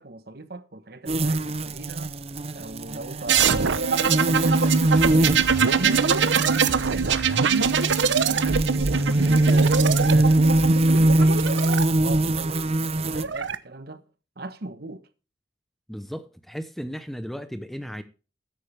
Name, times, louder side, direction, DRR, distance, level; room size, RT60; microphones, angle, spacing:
voice 1, 0.0-2.1 2.5-5.0 5.7-7.6 8.1-14.1 14.4-15.1, right 2 dB, 55° right, 1.2 m, -39 dB
sound 1, 1.1-13.2, right 2 dB, 35° right, 0.6 m, -23 dB
sound 2, 3.3-11.8 12.9-13.6, right 6 dB, 80° right, 0.9 m, -23 dB
voice 2, 15.9-18.0, equal, ahead, 0.8 m, -35 dB
13.5 x 10.5 x 3.4 m
head